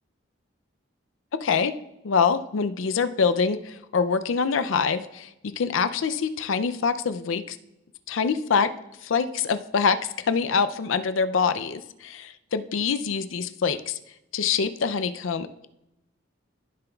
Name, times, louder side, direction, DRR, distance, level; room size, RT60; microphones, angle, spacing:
voice 1, 1.3-1.7 2.0-7.6 8.1-8.7 9.0-14.0 14.3-15.7, left 5 dB, 85° left, 11 dB, 0.5 m, -25 dB
14.0 x 6.9 x 2.3 m, 0.88 s
head